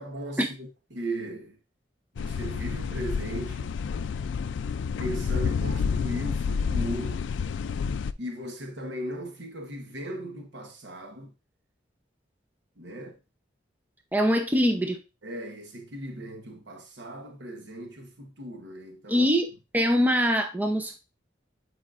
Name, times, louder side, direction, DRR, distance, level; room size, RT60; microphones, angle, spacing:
voice 1, 0.0-1.6 2.1-3.8 5.0-7.3 8.2-11.3 12.8-13.2 15.2-19.3, right 1 dB, 75° right, 1.1 m, -37 dB
sound 1, 2.2-8.1, left 5 dB, 80° left, 0.3 m, -29 dB
voice 2, 14.1-15.0 19.1-19.5 19.7-21.0, equal, 10° right, 0.6 m, -23 dB
7.8 x 4.8 x 2.5 m
head